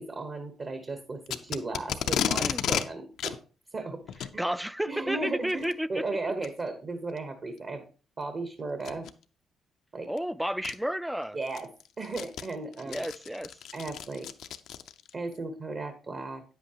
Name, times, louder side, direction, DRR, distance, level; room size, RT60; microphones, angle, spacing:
voice 1, 0.0-3.4 3.7-4.0 4.3-4.5 4.9-7.8 8.2-9.1 9.9-10.1 11.3-11.7 12.0-13.0 13.7-14.3 15.1-16.4, right 3 dB, 40° right, 1.1 m, -35 dB
Packing tape duct tape, 1.3-2.9 3.2-3.4 4.1-4.3 5.5-5.7 6.4-6.5 7.2-7.3 8.8-9.1 10.2-10.3 10.6-10.7 11.2-15.1, left 9 dB, 80° left, 0.5 m, -32 dB
voice 2, 4.4-6.0 10.0-11.4 12.9-13.6, equal, 5° right, 0.4 m, -32 dB
9.2 x 8.0 x 2.9 m
cardioid pair, 90°, 0 cm